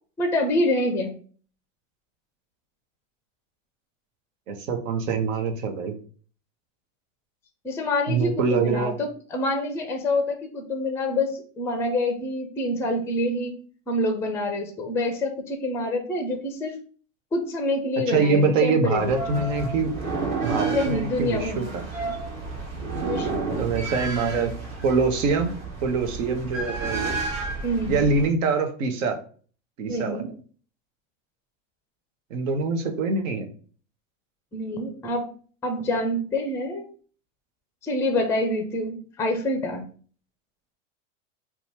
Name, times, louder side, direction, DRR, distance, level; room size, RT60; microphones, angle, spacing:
voice 1, 0.2-1.1 7.6-13.5 13.9-16.7 17.3-19.2 20.7-21.8 23.0-23.6 27.6-28.1 29.9-30.3 34.5-35.3 35.6-36.8 37.8-39.8, left 1 dB, 5° left, 5 dB, 0.4 m, -26 dB
voice 2, 4.5-5.9 8.1-9.0 18.1-19.9 20.4-21.8 23.6-24.5 24.8-25.5 25.8-27.2 27.9-29.2 29.8-30.2 32.3-33.5, right 4 dB, 80° right, 5 dB, 0.8 m, -24 dB
sound 1, 19.0-28.3, right 4 dB, 40° right, 1.4 m, -31 dB
2.9 x 2.3 x 4.1 m, 0.43 s
supercardioid pair, 115°, 38 cm